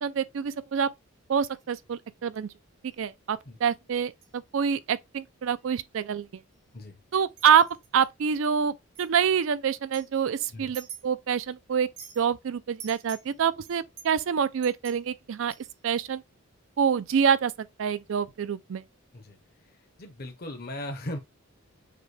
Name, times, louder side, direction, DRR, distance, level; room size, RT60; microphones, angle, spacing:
voice 1, 0.0-0.9 1.3-2.5 3.0-6.4 7.1-7.7 7.9-11.9 12.2-15.5 15.8-16.2 16.8-17.5 17.8-18.8, right 7 dB, 65° right, 0.4 m, -26 dB
sound 1, 1.5-1.8 2.9-3.1 3.7-4.4 4.7-4.9 5.4-5.7 5.9-6.9 7.3-8.1 9.0-9.1 9.8-11.4 11.7-12.3 12.8-15.9, right 7 dB, 85° right, 2.0 m, -48 dB
voice 2, 19.6-21.2, left 1 dB, 45° left, 0.8 m, -38 dB
6.6 x 2.2 x 3.2 m
head